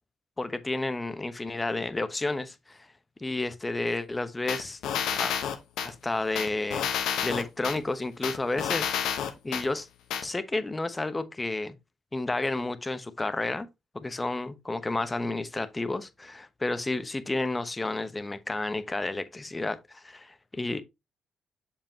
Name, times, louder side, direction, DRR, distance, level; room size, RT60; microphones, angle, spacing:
voice 1, 0.4-2.9 3.2-4.8 5.2-5.3 5.8-6.9 7.2-8.9 9.4-9.9 10.2-11.8 12.1-13.7 13.9-20.8, left 2 dB, 20° left, 1.0 m, -31 dB
sound 1, 4.5-5.9 6.4-7.8 8.2-9.7 10.1-10.2, left 8 dB, 80° left, 1.1 m, -29 dB
6.9 x 5.3 x 2.8 m
supercardioid pair, 60°, 0 cm